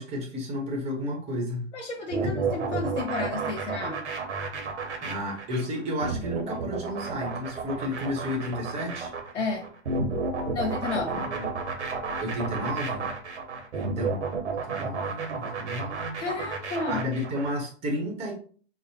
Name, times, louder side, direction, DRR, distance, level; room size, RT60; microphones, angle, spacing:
voice 1, 0.0-1.6 2.2-2.3 5.0-9.1 11.1-11.5 12.2-13.1 13.7-16.2 16.9-18.3, left 1 dB, 20° right, 0 dB, 0.9 m, -32 dB
voice 2, 1.7-4.0 9.3-9.7 10.5-11.2 16.2-17.0, left 3 dB, 65° left, 2 dB, 1.1 m, -31 dB
sound 1, 2.1-17.5, right 4 dB, 75° right, 1.1 m, -32 dB
5.4 x 2.1 x 2.8 m, 0.43 s
hypercardioid pair, 130°, 35 cm